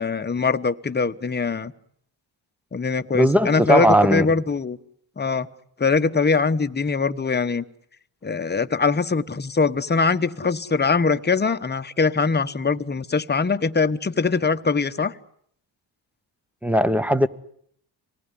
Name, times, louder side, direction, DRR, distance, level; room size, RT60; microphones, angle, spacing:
voice 1, 0.0-1.7 2.7-4.8 5.2-5.5 5.8-7.6 8.2-15.1, left 4 dB, 25° left, 1.1 m, -22 dB
voice 2, 3.1-4.3 16.6-17.3, right 1 dB, 5° right, 1.1 m, -18 dB
26.5 x 19.0 x 10.0 m
cardioid pair, 100°, 42 cm